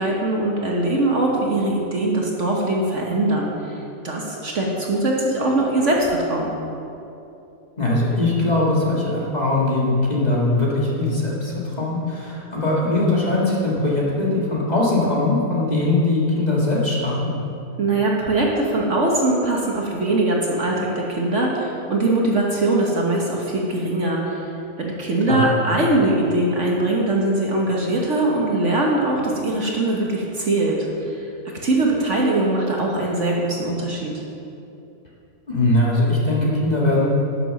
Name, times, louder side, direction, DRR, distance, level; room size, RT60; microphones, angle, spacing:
voice 1, 0.0-6.5 17.8-24.5 24.8-31.3 31.6-34.1, right 2 dB, 50° right, -2 dB, 1.4 m, -21 dB
voice 2, 7.8-17.4 25.3-25.5 35.5-37.1, left 2 dB, 25° left, -5 dB, 1.7 m, -21 dB
10.5 x 6.9 x 6.2 m, 2.8 s
omnidirectional pair, 1.8 m